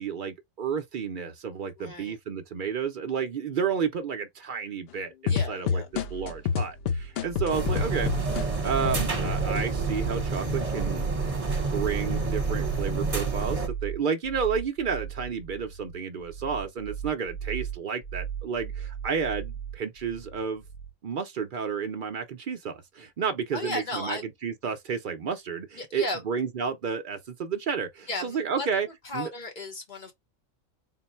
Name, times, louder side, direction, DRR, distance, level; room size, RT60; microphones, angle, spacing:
voice 1, 0.0-8.1 8.6-11.1 11.6-20.6 21.0-28.9 29.1-29.3, right 6 dB, 60° right, 0.5 m, -31 dB
voice 2, 1.8-2.2 5.3-5.9 23.5-24.2 25.8-26.2 28.1-28.7 29.0-30.1, left 2 dB, 40° left, 1.1 m, -34 dB
sound 1, 5.3-9.6 10.1-10.8, left 6 dB, 60° left, 0.6 m, -28 dB
sound 2, 5.9-20.9, right 8 dB, 85° left, 2.0 m, -37 dB
sound 3, 7.5-13.7, right 3 dB, 25° right, 1.2 m, -29 dB
3.8 x 2.1 x 4.2 m
omnidirectional pair, 1.4 m